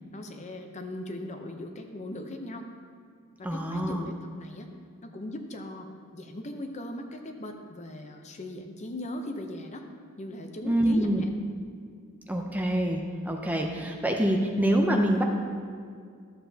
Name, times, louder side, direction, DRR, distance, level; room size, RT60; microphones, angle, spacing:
voice 1, 0.1-2.7 3.4-4.7 5.0-5.9 6.1-9.8 10.2-11.3, left 1 dB, 30° left, 4 dB, 0.7 m, -39 dB
voice 2, 3.4-4.1 10.6-11.2 12.3-15.2, right 1 dB, 5° right, 1 dB, 0.6 m, -26 dB
12.5 x 7.7 x 2.8 m, 2.1 s
head